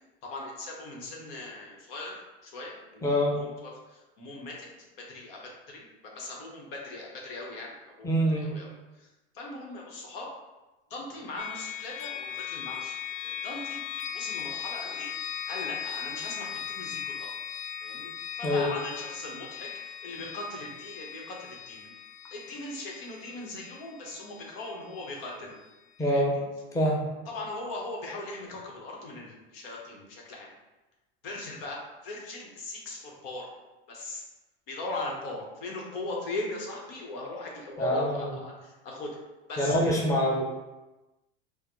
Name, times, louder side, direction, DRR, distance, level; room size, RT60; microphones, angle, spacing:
voice 1, 0.2-2.2 2.4-4.7 5.0-7.7 8.0-8.7 9.0-9.1 9.3-10.3 10.9-13.8 14.1-15.1 15.5-17.3 17.8-21.9 22.3-25.6 26.1-26.4 27.3-30.5 31.2-33.5 33.9-34.2 34.7-39.2 39.5-39.9, left 2 dB, 75° left, -1 dB, 1.2 m, -39 dB
voice 2, 3.0-3.4 8.0-8.5 18.4-18.7 26.0-26.4 26.7-27.0 37.8-38.2 39.6-40.4, equal, 10° left, -3 dB, 0.7 m, -25 dB
sound 1, 11.4-25.2, left 9 dB, 50° left, 0.4 m, -38 dB
5.6 x 2.1 x 3.1 m, 1.1 s
supercardioid pair, 115°, 29 cm